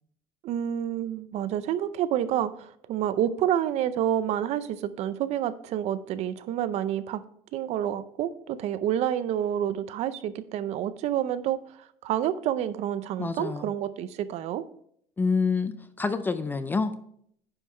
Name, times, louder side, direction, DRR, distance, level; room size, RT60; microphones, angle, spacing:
voice 1, 0.4-7.2 7.5-11.6 12.0-14.7, right 10 dB, 45° right, 14 dB, 0.5 m, -28 dB
voice 2, 13.2-13.7 15.2-16.9, left 4 dB, 15° left, 11 dB, 0.3 m, -27 dB
9.9 x 5.5 x 4.3 m, 0.66 s
cardioid pair, 175°, 15 cm